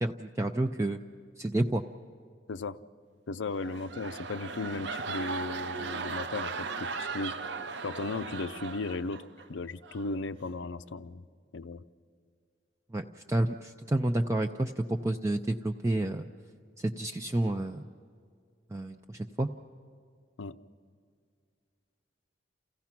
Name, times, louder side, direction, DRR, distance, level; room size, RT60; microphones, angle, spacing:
voice 1, 0.0-1.0 1.4-1.8 12.9-16.3 16.8-17.8 18.7-19.5, right 1 dB, 15° right, 4 dB, 0.4 m, -30 dB
voice 2, 3.3-7.3 7.8-9.2 9.5-11.3 11.5-11.8 20.4-20.6, left 3 dB, 75° left, 14 dB, 0.6 m, -36 dB
sound 1, 3.5-9.5 9.8-10.1, right 4 dB, 65° right, 0.6 m, -37 dB
28.5 x 15.5 x 5.9 m, 2.2 s
head